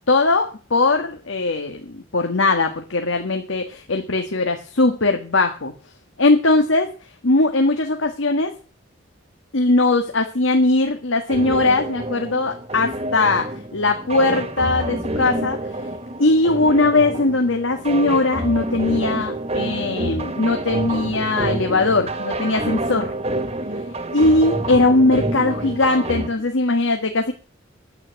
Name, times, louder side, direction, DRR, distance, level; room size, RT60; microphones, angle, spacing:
voice 1, 0.1-5.7 6.2-6.9 7.2-8.5 9.5-15.6 16.2-23.1 24.1-27.3, left 2 dB, 85° left, 5 dB, 1.6 m, -20 dB
sound 1, 11.3-26.3, right 1 dB, 30° right, 1.3 m, -28 dB
9.7 x 8.5 x 9.4 m, 0.38 s
head